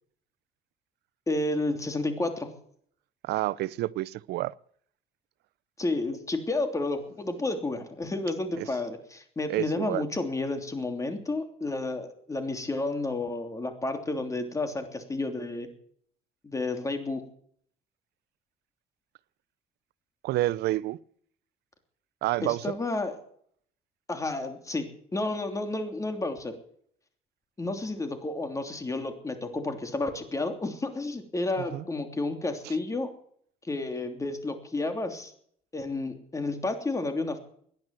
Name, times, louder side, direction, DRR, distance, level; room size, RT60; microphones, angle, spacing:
voice 1, 1.3-2.5 5.8-15.7 16.4-17.2 22.4-23.1 24.1-26.6 27.6-33.1 33.6-35.3 35.7-37.4, left 2 dB, 20° left, 3.1 m, -31 dB
voice 2, 3.2-4.5 8.6-8.7 9.5-10.0 20.2-21.0 22.2-22.7 31.6-31.8 32.6-32.7, right 16 dB, 75° right, 0.6 m, -29 dB
18.0 x 10.5 x 7.6 m
cardioid pair, 110°, 17 cm